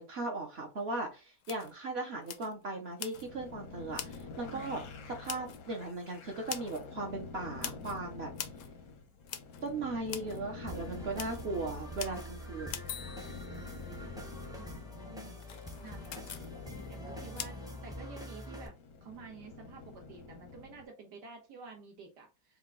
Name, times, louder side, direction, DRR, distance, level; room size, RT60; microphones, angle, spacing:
voice 1, 0.0-8.3 9.6-12.8, right 2 dB, 55° right, 2 dB, 0.8 m, -38 dB
sound 1, 0.8-0.9 1.4-1.7 2.2-2.6 3.0-3.3 3.9-4.3 5.2-5.6 6.5-6.9 7.6-8.0 8.4-8.7 9.3-9.7 10.1-10.4 10.8-10.9 11.1-11.4 12.0-12.3 12.7-14.0 15.4-16.5 17.4-17.5, left 9 dB, 70° left, 0.8 m, -43 dB
sound 2, 3.1-20.8, left 4 dB, 85° left, 1.5 m, -48 dB
voice 2, 4.5-4.8 14.6-15.4 15.8-16.5 16.9-18.8 19.0-22.6, right 5 dB, 85° right, 2 dB, 1.8 m, -51 dB
sound 3, 10.7-18.7, equal, 5° right, 0.3 m, -45 dB
4.6 x 2.3 x 3.7 m, 0.28 s
omnidirectional pair, 1.8 m